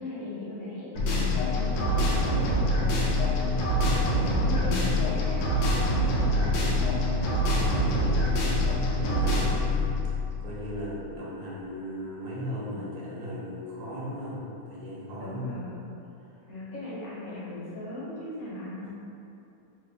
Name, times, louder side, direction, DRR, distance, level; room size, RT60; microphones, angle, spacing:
voice 1, 0.0-5.4 15.2-15.7 16.5-18.9, left 2 dB, 55° left, -9 dB, 0.8 m, -38 dB
sound 1, 1.0-10.9, left 1 dB, 80° left, 1.3 m, -25 dB
voice 2, 6.1-7.5 7.9-10.1 10.4-14.4 14.7-15.6 18.8-18.9, equal, 65° right, -6 dB, 1.1 m, -38 dB
3.7 x 2.1 x 3.3 m, 2.8 s
omnidirectional pair, 2.1 m